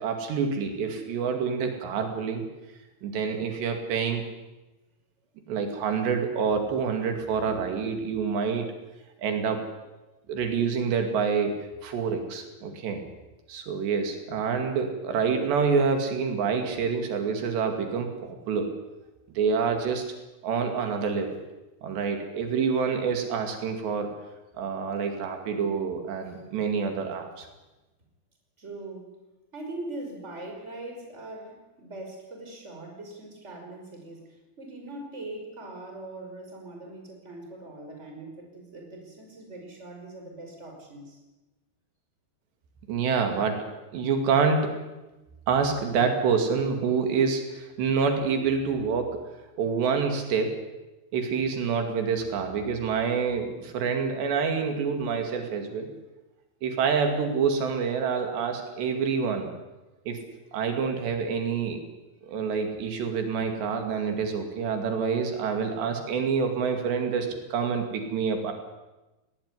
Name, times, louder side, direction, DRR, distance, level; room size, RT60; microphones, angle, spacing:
voice 1, 0.0-2.5 3.0-4.2 5.5-8.7 9.2-9.7 10.3-13.0 13.5-18.7 19.4-20.1 20.4-21.4 21.8-24.1 24.6-27.5 42.9-43.7 43.9-44.8 45.5-49.3 49.6-50.7 51.1-55.9 56.6-59.5 60.1-60.2 60.5-61.8 62.3-68.5, right 5 dB, 80° right, 5 dB, 4.6 m, -27 dB
voice 2, 28.6-29.2 29.5-41.2, right 2 dB, 15° right, 2 dB, 5.5 m, -41 dB
20.5 x 19.5 x 9.9 m, 1.1 s
omnidirectional pair, 4.9 m